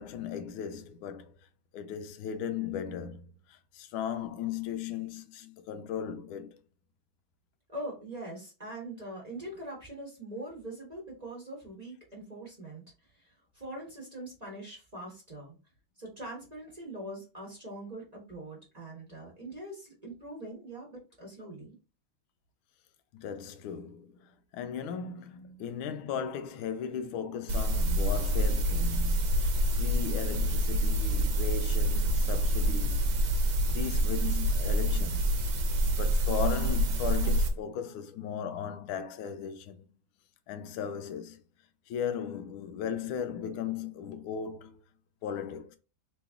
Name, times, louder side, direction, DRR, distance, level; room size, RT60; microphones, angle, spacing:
voice 1, 0.0-1.4 1.7-6.6 23.1-33.1 33.7-35.4 35.6-39.8 40.5-41.4 41.9-44.8 45.2-45.8, left 8 dB, 90° left, 1.4 m, -37 dB
voice 2, 7.7-12.8 13.1-15.5 16.0-21.7, right 1 dB, 25° right, 1.1 m, -42 dB
sound 1, 27.5-37.5, right 1 dB, 65° right, 1.3 m, -27 dB
3.5 x 3.0 x 3.5 m
omnidirectional pair, 2.2 m